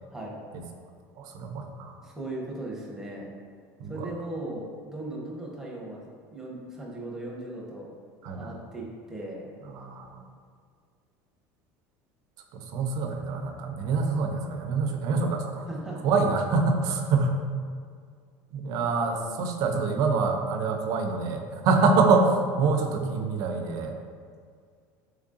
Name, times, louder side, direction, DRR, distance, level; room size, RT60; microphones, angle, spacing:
voice 1, 1.2-1.9 3.8-4.1 8.2-8.6 9.6-10.2 12.5-15.7 16.0-17.4 18.5-23.9, right 4 dB, 55° right, 4 dB, 0.4 m, -26 dB
voice 2, 2.0-3.3 3.9-7.9 8.3-9.4 15.7-16.0 18.7-19.3 21.8-21.9, right 1 dB, 5° right, -3 dB, 0.7 m, -38 dB
3.7 x 3.2 x 2.5 m, 2.1 s
supercardioid pair, 130°, 8 cm